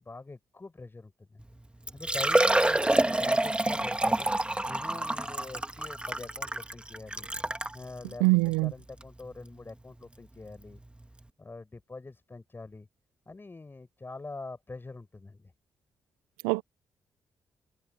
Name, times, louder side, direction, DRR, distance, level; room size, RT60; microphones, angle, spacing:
voice 1, 0.0-1.5 1.9-7.3 7.7-8.2 8.6-10.8 11.4-12.9 13.3-15.5, left 3 dB, 30° left, 6.5 m, -44 dB
Liquid, 1.4-1.5 1.9-7.8 8.5-8.6 9.0-9.1 10.7-10.8 11.0-11.1, right 1 dB, 15° right, 1.7 m, -27 dB
voice 2, 8.2-8.7 16.4-16.6, right 25 dB, 90° right, 0.4 m, -23 dB
hypercardioid pair, 45°, 7 cm